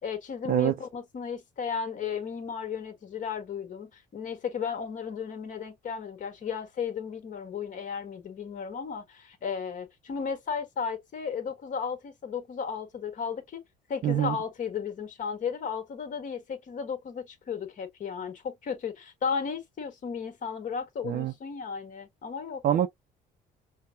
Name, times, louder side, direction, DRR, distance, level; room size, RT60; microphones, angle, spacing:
voice 1, 0.0-13.6 13.9-22.6, left 6 dB, 50° left, 1.6 m, -34 dB
voice 2, 14.0-14.4 21.1-21.3 22.6-22.9, right 10 dB, 55° right, 0.5 m, -24 dB
5.6 x 2.2 x 2.6 m
cardioid pair, 110°, 17 cm